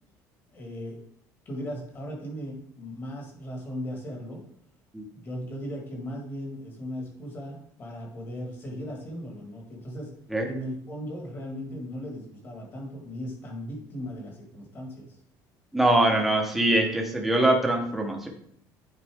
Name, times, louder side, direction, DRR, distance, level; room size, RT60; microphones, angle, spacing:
voice 1, 0.5-1.0 1.4-4.4 5.1-10.1 10.4-15.2, equal, 30° left, 1 dB, 1.6 m, -37 dB
voice 2, 15.7-18.3, right 1 dB, ahead, 1 dB, 0.9 m, -23 dB
9.4 x 4.0 x 3.5 m, 0.66 s
cardioid pair, 170°, 8 cm